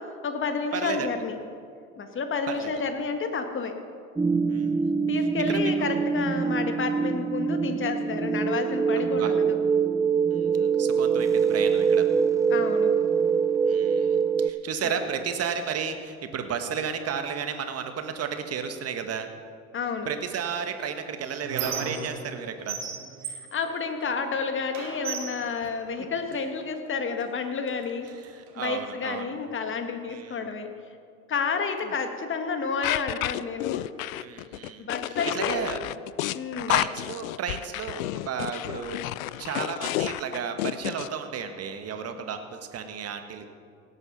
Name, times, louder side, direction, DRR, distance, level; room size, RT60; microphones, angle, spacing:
voice 1, 0.0-1.4 2.0-3.8 5.1-9.6 12.5-12.9 14.8-15.0 19.7-20.1 23.3-28.1 28.6-30.7 31.3-33.8 34.8-35.6 36.3-36.9, left 5 dB, 30° left, 6 dB, 1.6 m, -30 dB
voice 2, 0.7-1.1 2.5-2.7 4.5-4.9 5.5-6.1 9.2-9.3 10.3-12.0 13.6-19.3 20.0-22.8 28.2-29.2 30.1-30.5 31.8-31.9 34.1-35.8 36.7-39.0 39.4-43.5, right 7 dB, 35° right, 7 dB, 1.5 m, -33 dB
sound 1, 4.2-14.5, right 6 dB, 5° right, 0.5 m, -24 dB
Squeak, 20.6-22.4 22.7-24.3 24.7-26.4 27.2-27.3 27.7-28.7, right 6 dB, 75° right, 2.0 m, -37 dB
sound 2, 32.8-41.1, left 16 dB, 70° left, 0.5 m, -30 dB
17.5 x 8.3 x 5.4 m, 2.2 s
hypercardioid pair, 75°, 43 cm